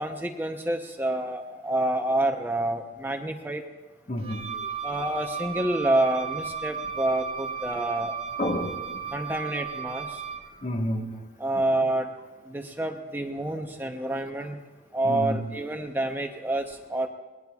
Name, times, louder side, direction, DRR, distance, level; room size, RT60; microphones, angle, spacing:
voice 1, 0.0-3.6 4.8-8.1 9.1-10.2 11.4-12.1 12.5-14.6 14.9-17.1, right 1 dB, 10° right, 0.7 m, -28 dB
voice 2, 4.1-4.5 8.4-9.3 10.6-11.2 15.0-15.4, equal, 40° left, 1.4 m, -30 dB
Wind instrument woodwind instrument, 4.2-10.5, right 6 dB, 30° right, 1.4 m, -35 dB
26.0 x 20.0 x 2.4 m
head